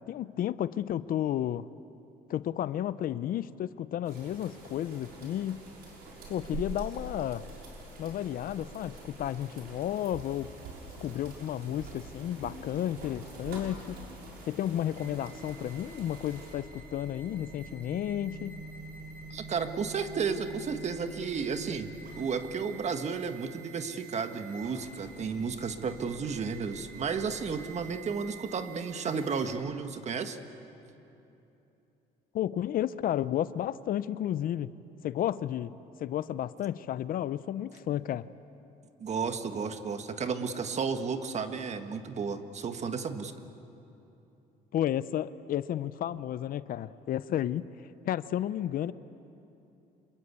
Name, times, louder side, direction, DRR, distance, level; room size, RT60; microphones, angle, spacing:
voice 1, 0.1-1.7 2.3-5.6 6.3-7.4 8.0-10.5 11.0-14.0 14.4-18.6 32.3-34.7 35.0-35.7 36.0-38.3 44.7-47.6 48.0-48.9, left 11 dB, 60° left, 16 dB, 0.6 m, -32 dB
sound 1, 4.0-16.5, right 2 dB, 75° right, 6.3 m, -45 dB
sound 2, 9.9-29.6, right 3 dB, 60° right, 6.8 m, -48 dB
voice 2, 19.3-30.4 39.0-43.3, right 5 dB, 40° right, 8 dB, 1.6 m, -33 dB
27.0 x 22.0 x 8.3 m, 2.9 s
cardioid pair, 110°, 17 cm